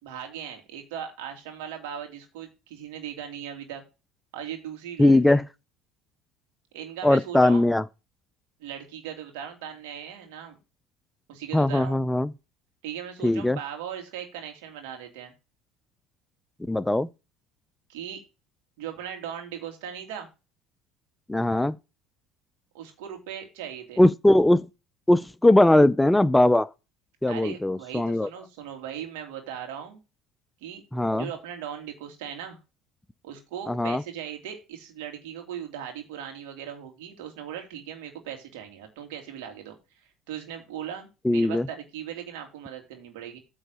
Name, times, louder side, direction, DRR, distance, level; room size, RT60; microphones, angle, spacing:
voice 1, 0.0-3.8 4.3-5.4 6.7-7.6 8.6-10.6 11.3-12.0 12.8-15.3 17.9-18.2 18.8-20.3 22.7-24.0 27.3-30.0 30.6-30.8 31.1-32.6 33.2-39.8 40.3-43.4, right 9 dB, 75° right, 2.5 m, -38 dB
voice 2, 5.0-5.4 7.0-7.8 11.5-12.3 13.2-13.6 16.7-17.1 21.3-21.8 24.0-24.7 25.1-26.7 27.2-28.3 30.9-31.3 33.7-34.0 41.2-41.7, left 1 dB, 10° left, 0.4 m, -20 dB
9.0 x 3.9 x 6.6 m
hypercardioid pair, 75°, 0 cm